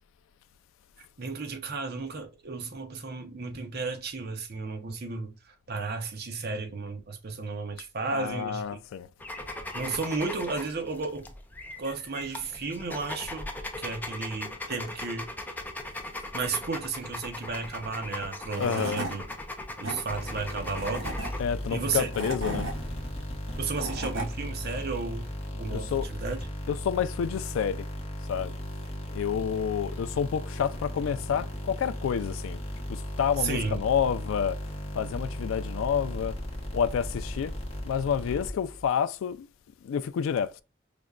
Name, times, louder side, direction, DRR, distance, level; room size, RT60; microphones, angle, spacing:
voice 1, 1.0-8.8 9.7-11.3 11.8-13.5 13.8-15.3 16.3-19.2 19.8-21.1 21.7-22.1 23.6-26.5 33.4-33.8, right 4 dB, 50° right, 0.7 m, -33 dB
voice 2, 8.1-9.1 18.6-19.0 21.4-22.7 25.7-26.1 26.7-27.9 28.3-28.5 29.1-32.6 32.9-34.6 35.0-36.4 36.7-37.5 37.8-39.5 39.8-40.6, left 7 dB, 85° left, 0.3 m, -29 dB
sound 1, 9.2-21.4, left 1 dB, 10° left, 0.4 m, -39 dB
Tools / Wood, 18.2-18.3 18.6-19.1 19.6-20.0 20.7-21.3 21.9-22.7 23.5-24.3, right 2 dB, 90° right, 1.4 m, -34 dB
sound 2, 20.1-38.9, equal, 30° left, 0.9 m, -36 dB
5.0 x 2.2 x 2.3 m
head